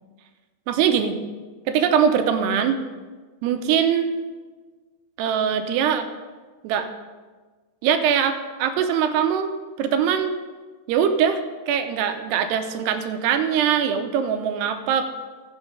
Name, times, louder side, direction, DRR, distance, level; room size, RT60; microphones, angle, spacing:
voice 1, 0.7-1.2 1.7-2.8 3.4-4.1 5.2-6.1 6.6-6.9 7.8-9.5 9.8-10.4 10.9-11.4 11.7-15.1, right 8 dB, 85° right, 8 dB, 2.8 m, -22 dB
16.0 x 6.3 x 4.9 m, 1.4 s
omnidirectional pair, 4.6 m